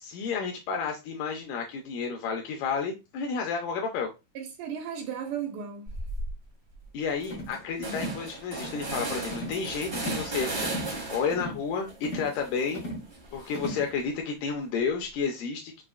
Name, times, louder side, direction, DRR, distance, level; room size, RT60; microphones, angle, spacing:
voice 1, 0.0-4.1 6.9-10.7 11.1-12.8 13.3-15.8, left 5 dB, 85° left, 2.2 m, -31 dB
voice 2, 4.4-5.9 7.3-8.1, right 7 dB, 75° right, 2.3 m, -36 dB
sound 1, 5.9-6.3 6.7-6.8 7.1-11.5 11.9-14.0, right 2 dB, 35° right, 1.3 m, -36 dB
sound 2, 7.3-7.6 7.9-8.2 8.6-8.9 9.3-9.6 9.9-10.3 10.6-10.9 11.3-11.6 12.0-12.4 12.7-13.1 13.5-13.9, equal, 70° left, 0.8 m, -36 dB
5.8 x 2.4 x 2.3 m
omnidirectional pair, 3.8 m